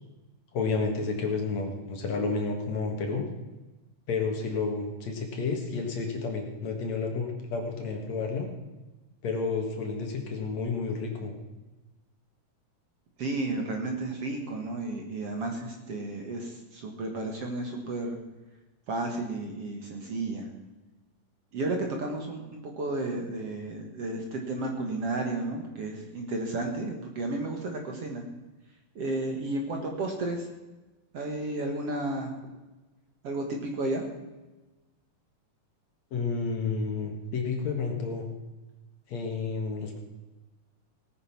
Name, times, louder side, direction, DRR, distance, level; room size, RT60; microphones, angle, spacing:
voice 1, 0.5-3.2 4.1-8.5 9.2-11.3 36.1-38.3 39.1-40.0, left 4 dB, 55° left, 3 dB, 2.6 m, -31 dB
voice 2, 13.2-18.2 18.9-20.5 21.5-28.2 29.0-30.5 31.1-32.3 33.2-34.0, right 2 dB, 50° right, 2 dB, 2.2 m, -32 dB
18.0 x 9.3 x 5.9 m, 1.1 s
omnidirectional pair, 4.1 m